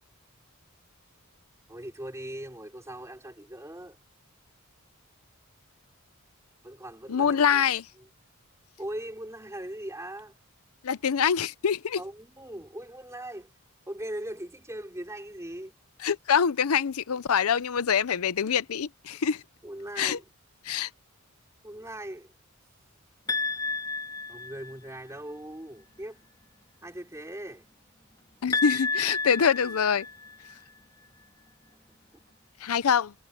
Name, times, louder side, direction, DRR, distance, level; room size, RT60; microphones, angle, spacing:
voice 1, 1.7-4.0 6.6-7.6 8.0-8.1 8.8-10.3 12.0-13.5 13.9-15.8 19.6-20.3 21.6-22.3 24.3-26.2 26.8-27.6, right 1 dB, 15° right, 3.5 m, -40 dB
voice 2, 7.1-7.9 10.8-12.0 16.0-19.4 20.0-20.2 20.6-20.9 28.4-30.1 32.6-33.1, left 7 dB, 80° left, 0.6 m, -25 dB
sound 1, 23.3-24.9 28.5-30.5, left 4 dB, 20° left, 2.4 m, -31 dB
head